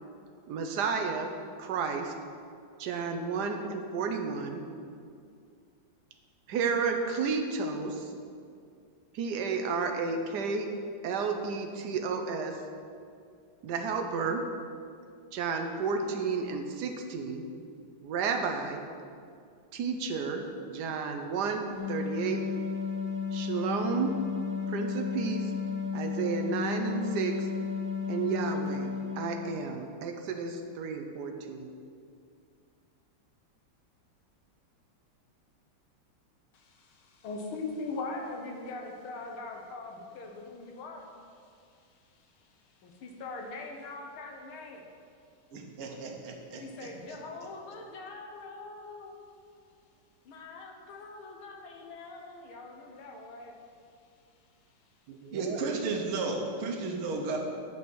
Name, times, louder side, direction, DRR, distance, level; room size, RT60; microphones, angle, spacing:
voice 1, 0.5-1.3 1.6-2.1 2.8-4.6 6.5-8.1 9.1-10.7 11.0-12.6 13.6-14.4 15.3-17.5 18.0-18.8 19.7-22.4 23.3-24.1 24.7-25.5 25.9-27.4 28.1-31.7 55.1-55.6, right 5 dB, 65° right, 5 dB, 1.2 m, -32 dB
sound 1, 21.7-29.9, left 6 dB, 45° left, 2.5 m, -33 dB
voice 2, 36.5-44.9 46.2-49.2 50.3-53.6, left 3 dB, 80° left, 2 dB, 1.9 m, -42 dB
voice 3, 45.5-46.9 55.3-57.4, right 3 dB, 80° right, 1 dB, 1.9 m, -33 dB
8.8 x 5.9 x 6.2 m, 2.3 s
omnidirectional pair, 2.3 m